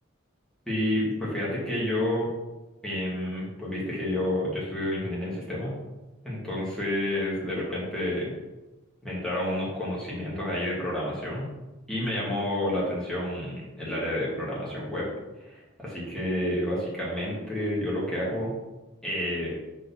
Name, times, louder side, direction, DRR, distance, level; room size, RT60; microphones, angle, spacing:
voice 1, 0.7-2.3 2.8-5.7 6.2-8.3 9.0-11.5 11.9-15.1 15.4-18.5 19.0-19.6, left 1 dB, 5° left, -7 dB, 2.2 m, -29 dB
4.9 x 4.3 x 5.9 m, 1.1 s
head